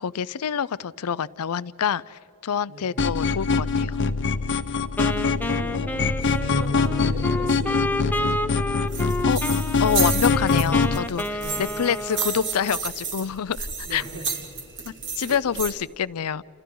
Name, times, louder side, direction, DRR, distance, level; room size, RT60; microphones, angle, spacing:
voice 1, 0.0-4.0 9.3-9.4 9.8-14.0 15.2-16.4, left 7 dB, 90° left, 19 dB, 0.5 m, -27 dB
sound 1, 3.0-11.0, left 4 dB, 55° left, 0.8 m, -23 dB
Wind instrument woodwind instrument, 5.0-12.9, left 1 dB, 10° left, 0.5 m, -30 dB
voice 2, 5.0-8.7 11.2-11.7 13.8-14.3 15.2-15.4, equal, 90° right, -1 dB, 4.6 m, -39 dB
sound 2, 8.9-15.7, right 5 dB, 55° right, 2.4 m, -32 dB
30.0 x 27.5 x 3.9 m, 2.7 s
head